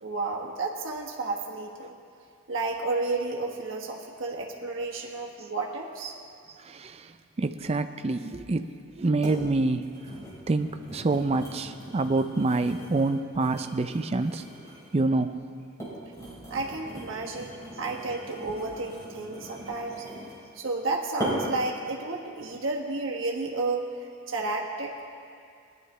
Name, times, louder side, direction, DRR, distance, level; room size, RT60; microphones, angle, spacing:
voice 1, 0.0-2.0 2.5-6.2 16.5-17.5 17.8-20.1 20.5-23.8 24.3-25.1, right 3 dB, 60° right, -1 dB, 1.4 m, -31 dB
voice 2, 6.7-7.1 7.4-9.9 10.5-14.4 14.9-15.3, right 2 dB, 30° right, 9 dB, 0.4 m, -27 dB
sound 1, 8.4-8.5 9.2-9.4 9.8-15.0 15.6-20.5 21.2-21.6 22.2-22.4, right 1 dB, 15° left, 3.9 m, -40 dB
19.0 x 11.0 x 3.3 m, 2.3 s
head